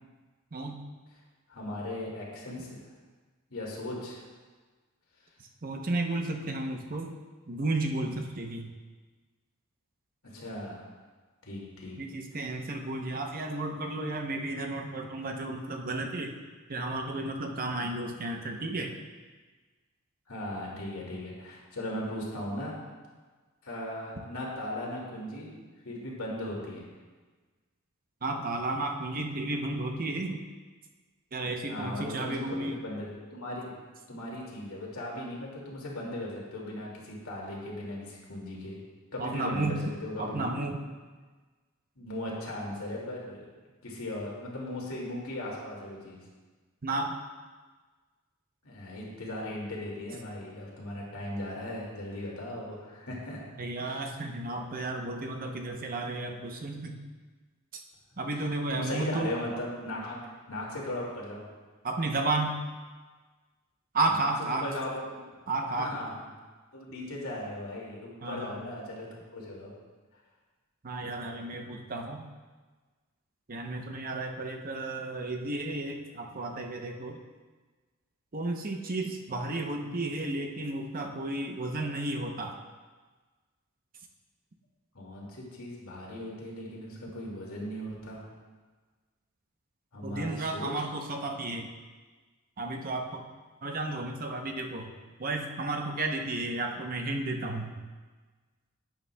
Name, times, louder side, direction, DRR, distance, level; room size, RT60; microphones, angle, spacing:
voice 1, 1.5-2.8 3.5-4.2 10.3-10.9 11.4-12.0 20.3-22.7 23.6-25.5 25.8-26.9 31.7-33.7 34.1-38.8 39.1-39.7 40.0-40.4 42.0-43.4 43.8-46.2 48.6-53.4 53.8-54.0 58.7-60.2 60.5-61.5 64.1-65.2 65.8-66.2 66.7-69.7 84.9-88.2 89.9-90.7, left 1 dB, 80° left, -3 dB, 2.2 m, -37 dB
voice 2, 5.6-7.1 7.5-8.7 12.0-16.4 16.7-18.9 28.2-30.4 31.3-32.8 39.2-39.8 40.2-40.8 46.8-47.2 53.6-57.0 57.7-57.8 58.2-59.3 61.8-62.6 63.9-64.7 65.5-65.9 68.2-68.7 70.8-72.3 73.5-77.2 78.3-82.6 90.0-91.7 92.6-93.3 93.6-94.9 95.2-97.8, right 2 dB, 40° right, 3 dB, 0.7 m, -33 dB
11.0 x 9.0 x 2.2 m, 1.4 s
head